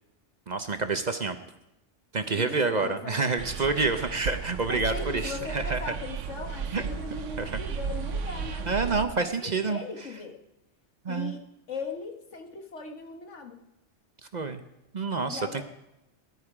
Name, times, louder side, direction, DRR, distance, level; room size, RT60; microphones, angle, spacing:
voice 1, 0.5-1.4 2.1-5.8 6.7-6.9 7.4-7.5 8.7-9.8 11.0-11.3 14.3-14.6 14.9-15.6, right 4 dB, 40° right, 8 dB, 0.8 m, -28 dB
voice 2, 2.3-3.3 4.7-10.4 11.1-11.4 11.7-13.6 15.2-15.6, left 4 dB, 80° left, 4 dB, 1.8 m, -39 dB
sound 1, 3.4-9.1, right 6 dB, 85° right, 1.2 m, -34 dB
18.5 x 11.0 x 4.9 m, 0.90 s
omnidirectional pair, 1.2 m